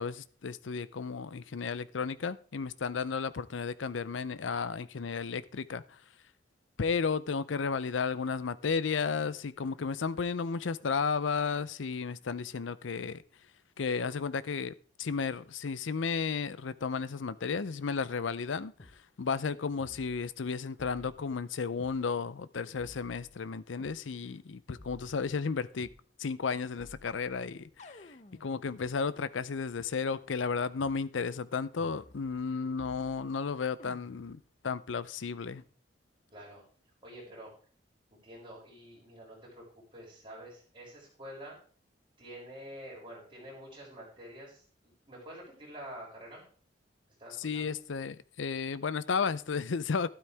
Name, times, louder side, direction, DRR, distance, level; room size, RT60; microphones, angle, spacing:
voice 1, 0.0-6.0 6.8-13.2 13.8-25.9 26.2-35.6 47.4-50.1, left 5 dB, 90° left, 0.6 m, -33 dB
sound 1, 18.8-19.0 19.8-20.5 20.8-22.0 22.8-24.0 24.8-26.0 26.8-28.9 29.8-29.9 30.8-31.0 31.8-32.5 32.8-33.4 33.8-34.4, left 2 dB, 40° left, 0.8 m, -55 dB
voice 2, 36.3-36.6 37.0-37.5 38.1-41.6 42.2-46.4 47.2-47.7, equal, 25° right, 6.8 m, -48 dB
12.5 x 12.0 x 3.5 m
head